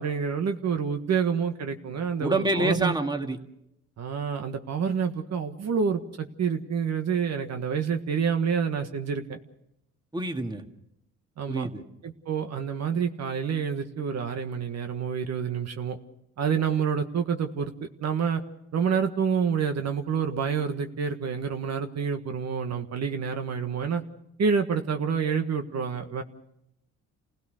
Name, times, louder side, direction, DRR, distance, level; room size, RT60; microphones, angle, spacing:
voice 1, 0.0-2.9 4.0-9.4 11.4-11.7 12.0-16.0 16.4-17.7 18.0-18.4 18.7-24.0 24.4-26.2, right 6 dB, 60° right, 6 dB, 1.7 m, -28 dB
voice 2, 2.2-3.4 10.1-10.6 11.5-11.8, right 2 dB, 15° right, 5 dB, 1.9 m, -27 dB
28.5 x 16.5 x 6.5 m, 0.79 s
cardioid pair, 90°, 30 cm